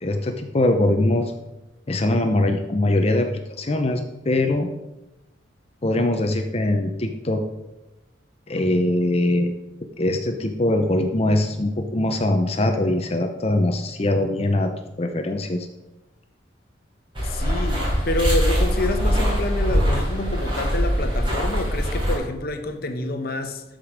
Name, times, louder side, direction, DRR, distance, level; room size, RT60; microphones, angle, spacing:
voice 1, 0.0-1.3 1.9-3.3 3.6-4.7 5.8-7.4 8.5-9.5 10.0-14.7 15.0-15.7, left 1 dB, 35° left, 0.6 m, -22 dB
voice 2, 17.2-23.6, left 2 dB, 50° left, 1.0 m, -28 dB
sound 1, 17.2-22.2, equal, 25° right, 3.6 m, -22 dB
13.0 x 5.1 x 5.0 m
head